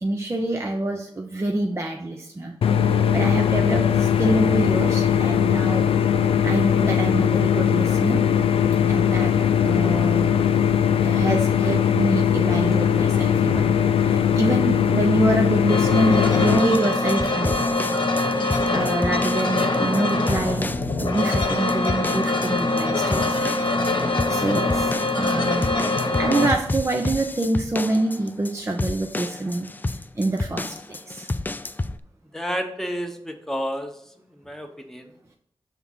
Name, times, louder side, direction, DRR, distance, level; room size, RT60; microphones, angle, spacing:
voice 1, 0.0-2.5 2.9-5.9 6.4-8.2 8.9-10.4 11.0-17.6 18.7-23.7 24.0-25.7 26.2-29.7 30.2-31.3, right 2 dB, 30° right, 2 dB, 0.7 m, -26 dB
sound 1, 2.6-16.6, left 8 dB, 90° left, 0.4 m, -20 dB
sound 2, 15.7-26.5, left 2 dB, 60° left, 1.0 m, -23 dB
sound 3, 16.5-32.0, left 2 dB, 20° left, 0.3 m, -31 dB
voice 2, 32.3-33.9 34.5-35.0, equal, 5° left, 4 dB, 1.0 m, -30 dB
5.8 x 3.7 x 5.6 m, 0.70 s
cardioid pair, 55°, 9 cm